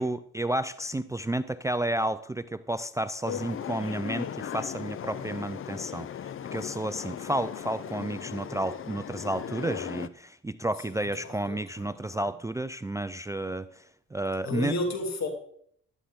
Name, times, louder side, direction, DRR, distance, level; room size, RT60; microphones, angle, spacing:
voice 1, 0.0-13.8 14.1-14.7, right 1 dB, 10° right, 14 dB, 0.4 m, -31 dB
sound 1, 3.3-10.1, left 9 dB, 45° left, 0.6 m, -37 dB
voice 2, 10.9-12.3 14.4-15.3, left 2 dB, 60° left, 3 dB, 3.0 m, -33 dB
14.5 x 11.5 x 3.7 m, 0.63 s
cardioid pair, 90°, 30 cm